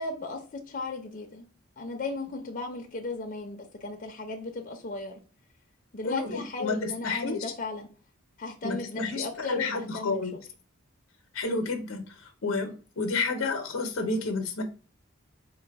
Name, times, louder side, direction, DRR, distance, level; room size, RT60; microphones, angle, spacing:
voice 1, 0.0-1.5 1.8-5.2 5.9-7.9 8.4-10.4, left 3 dB, 40° left, 2 dB, 0.5 m, -36 dB
voice 2, 6.0-7.4 8.6-10.4 11.3-12.0 12.4-14.6, left 3 dB, 85° left, 6 dB, 0.7 m, -30 dB
3.9 x 2.1 x 3.3 m, 0.36 s
head